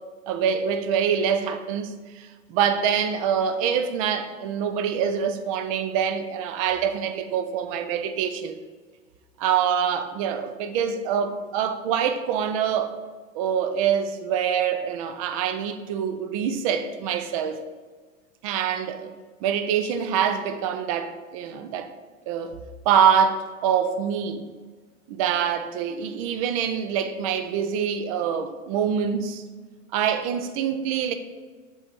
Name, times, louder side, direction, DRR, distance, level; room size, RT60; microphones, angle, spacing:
voice 1, 0.3-8.6 9.4-13.0 13.3-17.6 18.4-19.1 19.4-21.9 22.3-22.5 22.9-24.4 25.1-29.4 29.9-31.1, right 8 dB, 30° right, 0.4 m, -25 dB
6.2 x 4.1 x 4.6 m
figure-of-eight pair, 90°, 41 cm